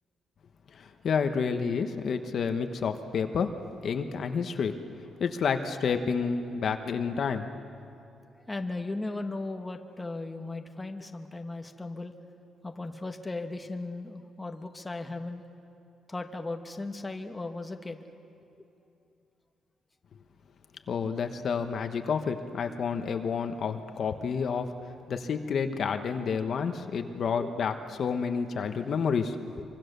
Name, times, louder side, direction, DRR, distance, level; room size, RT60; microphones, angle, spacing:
voice 1, 0.7-3.5 3.8-4.8 5.2-7.6 20.9-24.7 25.1-29.4, left 6 dB, 50° left, 7 dB, 1.2 m, -29 dB
voice 2, 8.5-15.4 16.1-18.0 27.0-27.5 28.8-29.0 29.5-29.6, left 2 dB, 15° left, 5 dB, 1.3 m, -37 dB
25.5 x 24.0 x 6.9 m, 2.6 s
cardioid pair, 130°, 0 cm